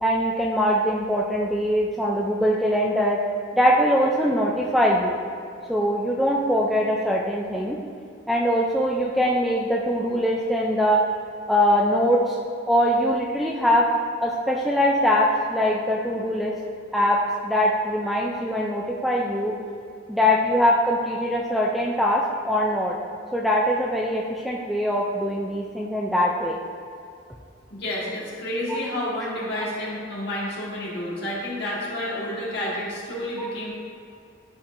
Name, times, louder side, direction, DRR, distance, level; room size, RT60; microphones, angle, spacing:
voice 1, 0.0-3.2 3.5-5.2 5.7-7.8 8.3-11.0 11.5-12.4 12.7-13.9 14.2-16.5 16.9-19.5 20.1-23.0 23.3-26.6 28.7-28.8 33.4-33.5, equal, ahead, -3 dB, 0.3 m, -22 dB
voice 2, 27.7-33.7, left 1 dB, 55° left, -6 dB, 1.6 m, -30 dB
10.5 x 4.4 x 2.6 m, 2.4 s
head